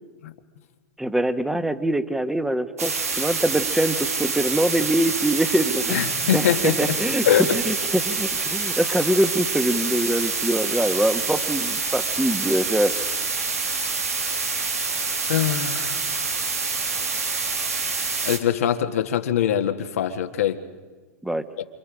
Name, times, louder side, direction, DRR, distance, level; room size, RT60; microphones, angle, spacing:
voice 1, 1.0-13.0 21.2-21.4, right 1 dB, 5° right, 9 dB, 1.5 m, -24 dB
sound 1, 2.8-18.4, right 4 dB, 90° right, 2.4 m, -26 dB
voice 2, 5.9-6.9 7.2-7.5 15.3-16.0 18.2-20.6 21.6-21.7, left 10 dB, 75° left, 6 dB, 1.8 m, -23 dB
29.0 x 27.0 x 5.1 m, 1.4 s
hypercardioid pair, 95°, 8 cm